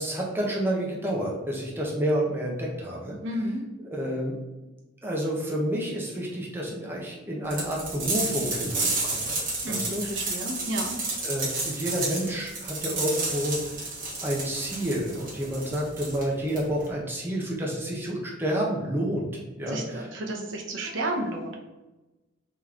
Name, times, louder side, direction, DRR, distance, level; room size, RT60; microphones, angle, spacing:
voice 1, 0.0-3.2 3.8-4.3 5.0-9.4 9.7-10.3 11.2-13.6 14.2-19.3 19.6-20.2, equal, 10° right, -3 dB, 0.8 m, -29 dB
voice 2, 3.2-3.6 9.6-11.0 19.7-21.6, right 1 dB, 70° right, 1 dB, 0.8 m, -32 dB
sound 1, 7.5-16.9, right 2 dB, 45° right, 1.4 m, -31 dB
3.7 x 3.1 x 3.7 m, 1.0 s
head